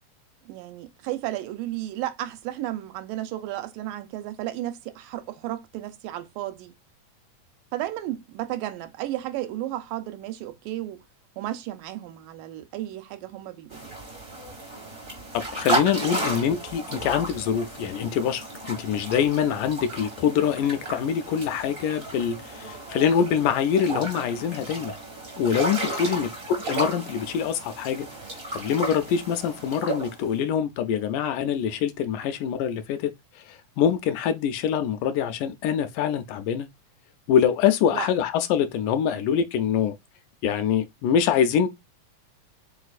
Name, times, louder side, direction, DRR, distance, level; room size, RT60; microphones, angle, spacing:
voice 1, 0.5-6.7 7.7-11.0 11.4-14.0 16.1-16.2 26.1-26.4 37.9-38.1 39.1-39.2, right 14 dB, 90° right, 2.2 m, -33 dB
sound 1, 13.7-30.4, right 2 dB, 60° right, 0.6 m, -34 dB
voice 2, 15.3-24.9 25.4-28.1 28.5-33.1 33.4-36.7 37.3-39.9 40.4-41.7, left 8 dB, 80° left, 2.0 m, -24 dB
5.0 x 4.0 x 2.4 m
omnidirectional pair, 3.8 m